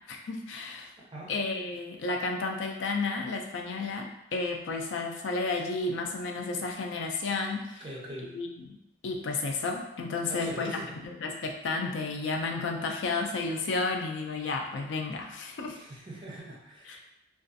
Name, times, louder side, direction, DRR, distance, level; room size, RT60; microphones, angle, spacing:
voice 1, 0.1-0.9 1.3-7.8 8.3-8.5 9.0-15.8 16.9-17.0, left 3 dB, 70° left, 2 dB, 0.4 m, -32 dB
voice 2, 7.8-8.4 10.2-11.0 15.7-17.0, right 1 dB, 25° right, -4 dB, 0.6 m, -43 dB
2.4 x 2.3 x 2.5 m, 0.88 s
head